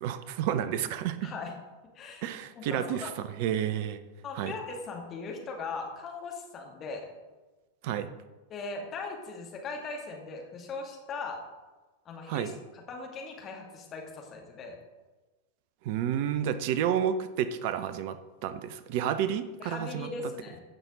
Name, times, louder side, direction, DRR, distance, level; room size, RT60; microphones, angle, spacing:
voice 1, 0.0-1.3 2.2-3.1 3.4-4.0 4.3-4.5 7.8-8.1 12.3-12.5 15.8-18.2 18.4-20.1, right 9 dB, 45° right, 13 dB, 0.7 m, -30 dB
voice 2, 1.2-1.6 1.9-3.1 4.2-7.1 8.5-11.4 12.1-14.8 19.6-20.6, left 4 dB, 30° left, 0 dB, 2.3 m, -39 dB
16.0 x 6.0 x 3.9 m, 1.2 s
figure-of-eight pair, 90°, 0 cm